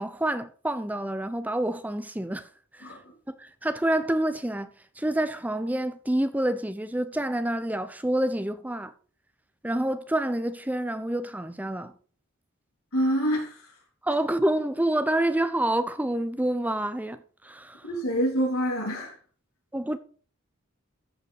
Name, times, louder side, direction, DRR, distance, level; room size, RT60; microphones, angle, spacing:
voice 1, 0.0-2.5 3.3-8.9 9.6-11.9 14.0-17.2 17.4-17.9 19.7-20.0, right 1 dB, 10° right, 0.8 m, -27 dB
voice 2, 12.9-13.7 17.8-19.1, equal, 85° left, 3.8 m, -26 dB
14.0 x 5.6 x 4.9 m
head